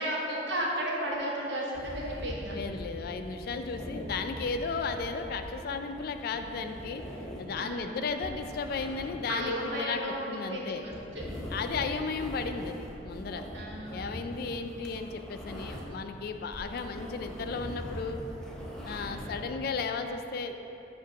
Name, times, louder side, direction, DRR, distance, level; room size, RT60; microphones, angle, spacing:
voice 1, 0.0-2.6 7.6-7.9 9.3-11.2 13.5-14.2 15.0-15.1 19.0-19.3, equal, 80° right, -3 dB, 1.1 m, -34 dB
sound 1, 1.7-16.1 16.4-19.4, equal, 5° left, 0.6 m, -42 dB
voice 2, 2.5-7.0 7.4-9.5 9.8-10.8 11.5-13.5 13.9-18.2 18.8-20.5, left 4 dB, 60° left, 7 dB, 0.3 m, -34 dB
7.3 x 2.5 x 5.7 m, 3.0 s
head